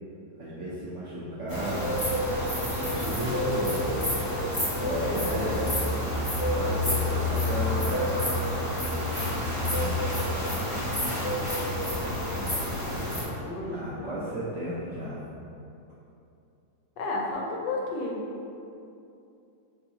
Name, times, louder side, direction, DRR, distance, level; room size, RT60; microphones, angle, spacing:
voice 1, 0.4-1.9 2.8-3.9 4.7-5.6 6.4-8.1 13.7-15.2, right 1 dB, 65° right, -8 dB, 0.7 m, -34 dB
sound 1, 1.5-13.2, left 1 dB, 20° left, 1.1 m, -28 dB
voice 2, 5.0-5.9 9.5-11.7 11.9-14.3 17.0-18.2, left 2 dB, 80° left, -1 dB, 1.3 m, -36 dB
5.5 x 3.0 x 2.7 m, 2.7 s
omnidirectional pair, 1.9 m